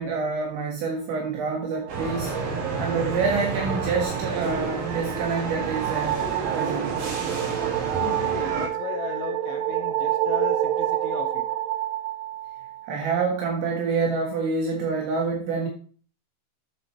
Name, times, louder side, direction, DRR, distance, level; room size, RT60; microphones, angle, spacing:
voice 1, 0.0-2.4 2.8-6.2 6.5-6.9 12.9-15.7, right 4 dB, 70° right, 3.6 m, -27 dB
sound 1, 1.7-13.1, right 13 dB, 90° right, 3.4 m, -29 dB
sound 2, 1.9-8.7, right 4 dB, 55° right, 3.8 m, -30 dB
voice 2, 7.9-11.5, left 9 dB, 80° left, 2.8 m, -36 dB
10.0 x 7.7 x 3.2 m
omnidirectional pair, 6.0 m